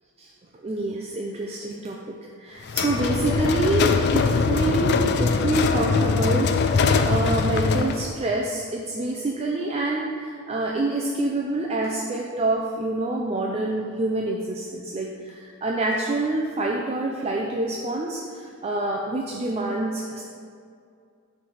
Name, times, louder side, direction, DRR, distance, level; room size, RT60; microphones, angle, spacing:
voice 1, 0.6-20.2, right 2 dB, 30° right, -1 dB, 0.4 m, -27 dB
sound 1, 2.7-8.1, left 4 dB, 50° left, 0.3 m, -22 dB
5.8 x 3.3 x 5.5 m, 2.3 s
head